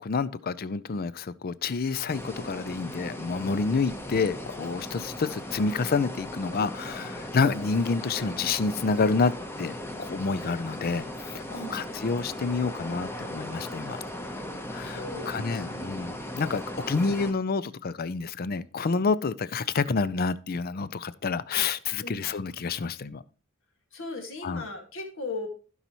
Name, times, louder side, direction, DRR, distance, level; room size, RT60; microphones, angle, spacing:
voice 1, 0.0-9.3 9.6-14.0 14.7-15.0 15.3-23.2 24.4-24.6, left 4 dB, 45° left, 0.5 m, -28 dB
sound 1, 2.1-17.3, left 1 dB, 10° left, 0.9 m, -38 dB
voice 2, 11.5-11.9 14.8-15.9 22.0-22.3 23.9-25.5, left 2 dB, 65° left, 2.0 m, -38 dB
16.0 x 5.5 x 3.0 m
head